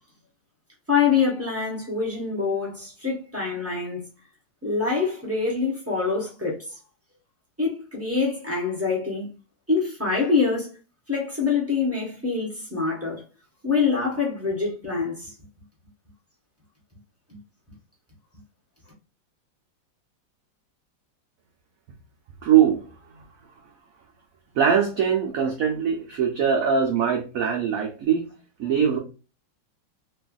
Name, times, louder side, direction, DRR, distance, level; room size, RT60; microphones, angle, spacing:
voice 1, 0.9-4.0 4.6-6.7 7.6-9.3 9.7-10.7 11.1-13.2 13.6-15.3 17.3-17.4, left 5 dB, 15° right, 0.5 m, -25 dB
voice 2, 22.4-22.9 24.6-28.3 28.6-29.0, right 8 dB, 80° right, 0.7 m, -22 dB
3.3 x 2.4 x 2.2 m
omnidirectional pair, 2.0 m